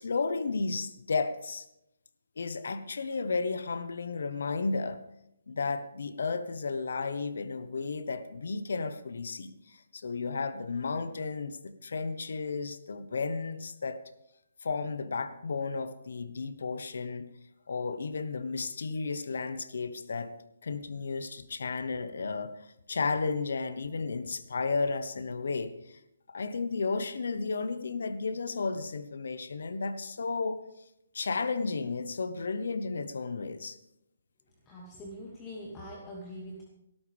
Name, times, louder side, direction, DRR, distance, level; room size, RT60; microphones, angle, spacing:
voice 1, 0.0-1.6 2.4-5.0 5.5-14.0 14.6-17.3 17.7-20.3 20.6-26.0 26.3-30.6 31.1-33.8, left 4 dB, 70° left, 12 dB, 1.1 m, -33 dB
voice 2, 34.6-36.6, equal, 20° left, -3 dB, 2.4 m, -43 dB
19.5 x 12.5 x 3.6 m, 0.84 s
hypercardioid pair, 150°, 0 cm